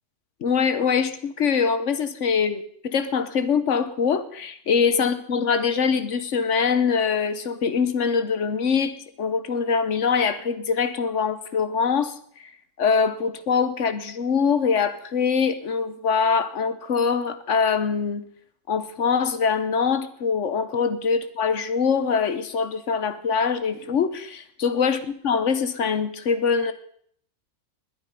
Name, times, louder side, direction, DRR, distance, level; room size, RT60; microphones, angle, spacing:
voice 1, 0.4-12.1 12.8-18.2 18.7-26.7, left 6 dB, 55° left, 12 dB, 1.3 m, -23 dB
20.5 x 9.0 x 5.3 m, 0.63 s
omnidirectional pair, 1.6 m